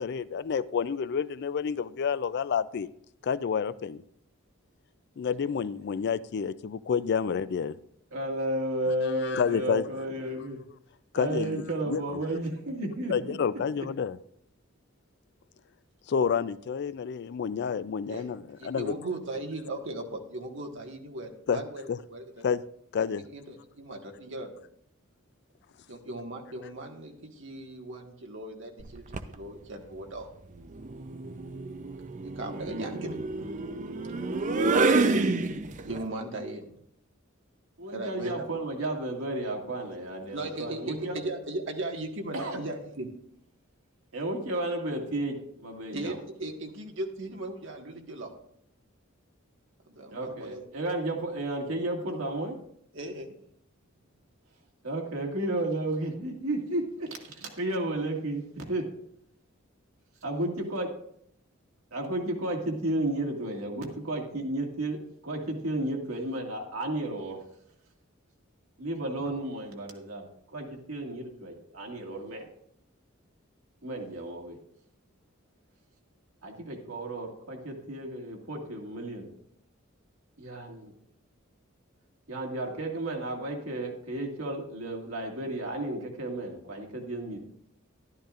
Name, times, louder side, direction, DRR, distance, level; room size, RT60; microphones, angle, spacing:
voice 1, 0.0-2.9 3.2-4.0 5.2-7.8 9.0-9.9 11.1-12.0 13.1-14.2 16.1-18.9 21.5-21.6 21.9-22.0 22.4-22.6 22.9-23.2, left 6 dB, 55° left, 17 dB, 0.3 m, -29 dB
voice 2, 8.1-10.6 11.2-13.4 13.8-13.9 37.8-41.2 42.3-42.6 44.1-46.2 50.1-52.6 54.8-58.8 60.2-60.9 61.9-65.0 65.2-67.4 68.8-72.5 73.8-74.6 76.4-79.3 80.4-80.9 82.3-87.4, right 1 dB, 90° right, 1 dB, 2.0 m, -33 dB
voice 3, 18.6-22.5 23.2-24.5 25.9-30.3 32.3-33.8 35.8-36.7 37.9-38.5 40.2-43.1 45.9-48.3 49.9-50.6 52.9-53.3, right 2 dB, 65° right, 2 dB, 1.6 m, -38 dB
sound 1, 28.8-29.3 30.7-36.0, right 3 dB, 35° right, 0.5 m, -28 dB
13.0 x 12.0 x 2.5 m, 0.71 s
head